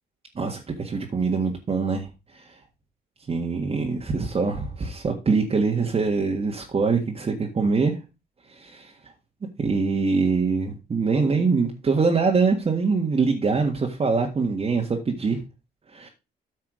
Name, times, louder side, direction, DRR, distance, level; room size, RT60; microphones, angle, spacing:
voice 1, 0.3-2.1 2.3-2.6 3.3-8.0 8.5-8.9 9.6-15.4 15.9-16.1, right 4 dB, 35° right, 1 dB, 1.7 m, -24 dB
9.2 x 5.7 x 5.0 m, 0.28 s
cardioid pair, 95°, 17 cm